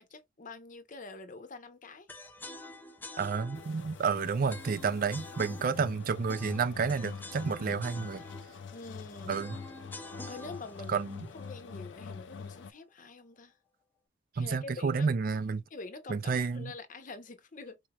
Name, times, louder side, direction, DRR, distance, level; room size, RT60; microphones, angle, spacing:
voice 1, 0.0-2.1 8.7-9.3 10.3-11.0 11.3-13.5 14.4-15.1 15.7-17.8, left 3 dB, 45° left, 0.7 m, -46 dB
sound 1, 2.1-12.2, left 2 dB, 10° left, 0.5 m, -48 dB
voice 2, 3.2-8.2 9.3-9.6 10.9-11.3 14.4-15.6 16.1-16.7, right 5 dB, 50° right, 0.4 m, -30 dB
sound 2, 3.5-12.7, left 5 dB, 80° left, 0.4 m, -45 dB
4.3 x 2.9 x 2.3 m
head